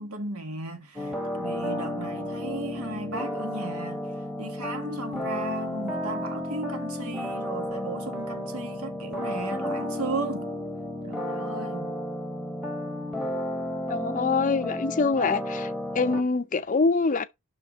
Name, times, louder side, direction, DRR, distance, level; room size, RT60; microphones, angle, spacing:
voice 1, 0.0-10.5 11.0-12.0, right 2 dB, 85° right, 1.8 m, -36 dB
sound 1, 1.0-16.2, left 1 dB, 5° right, 1.1 m, -32 dB
voice 2, 13.9-15.7 15.9-17.2, left 4 dB, 35° left, 0.5 m, -24 dB
5.7 x 5.6 x 5.3 m
head